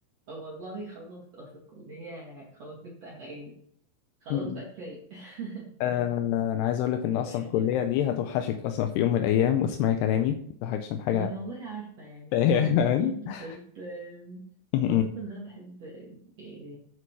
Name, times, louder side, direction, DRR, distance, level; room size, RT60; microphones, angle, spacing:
voice 1, 0.3-3.6 4.2-6.4 7.1-7.9 11.1-14.5 14.9-16.8, right 2 dB, 45° right, -3 dB, 2.7 m, -42 dB
voice 2, 4.3-4.6 5.8-10.4 10.6-11.3 12.3-13.5 14.7-15.1, left 10 dB, 80° left, 6 dB, 2.7 m, -25 dB
13.5 x 7.4 x 4.7 m, 0.64 s
omnidirectional pair, 4.9 m